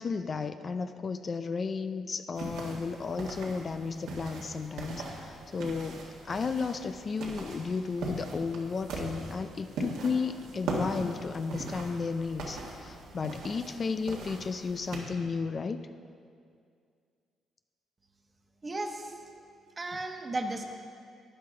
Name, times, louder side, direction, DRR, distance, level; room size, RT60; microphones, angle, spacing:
voice 1, 0.0-15.8, left 5 dB, 40° left, 9 dB, 0.4 m, -33 dB
sound 1, 2.4-15.0, right 2 dB, 90° right, 1.7 m, -40 dB
voice 2, 18.6-19.1 19.8-20.6, right 2 dB, 30° right, 4 dB, 1.1 m, -34 dB
12.5 x 9.3 x 3.9 m, 2.2 s
cardioid pair, 90°, 0 cm